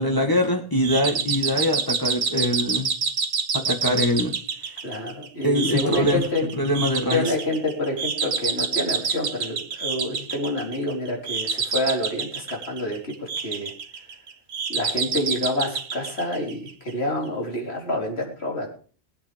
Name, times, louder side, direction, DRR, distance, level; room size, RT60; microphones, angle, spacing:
voice 1, 0.0-2.9 3.5-4.3 5.4-6.2 6.5-7.3, equal, 20° left, 1 dB, 1.9 m, -23 dB
sound 1, 0.8-16.9, right 5 dB, 90° right, 1.3 m, -28 dB
voice 2, 4.8-6.5 7.1-13.7 14.7-18.7, left 1 dB, 80° left, 0 dB, 4.2 m, -28 dB
20.5 x 8.6 x 5.2 m, 0.42 s
omnidirectional pair, 1.1 m